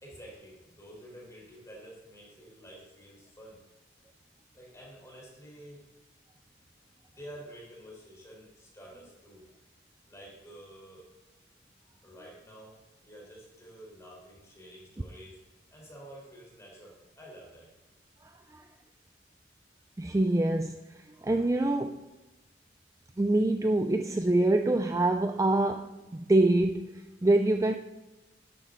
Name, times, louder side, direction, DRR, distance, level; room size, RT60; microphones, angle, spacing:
voice 1, 0.0-3.6 4.5-5.9 7.1-9.4 10.1-11.1 12.0-15.4 15.7-17.7, right 1 dB, 15° left, 4.3 m, -49 dB
voice 2, 18.2-18.6 20.0-22.1 23.2-27.7, right 2 dB, 15° right, 0.4 m, -26 dB
12.0 x 10.5 x 4.0 m
head